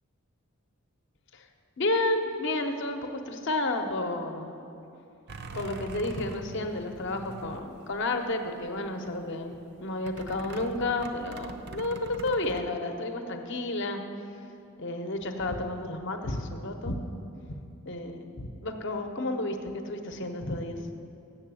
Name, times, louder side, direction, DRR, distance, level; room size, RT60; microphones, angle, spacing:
voice 1, 1.8-4.6 5.5-9.5 9.8-14.0 14.8-17.0 17.8-20.8, left 2 dB, 55° left, 5 dB, 0.7 m, -31 dB
sound 1, 5.3-8.3 8.6-9.2 10.1-12.6, right 3 dB, 50° right, 0.5 m, -43 dB
7.3 x 6.9 x 8.2 m, 2.8 s
head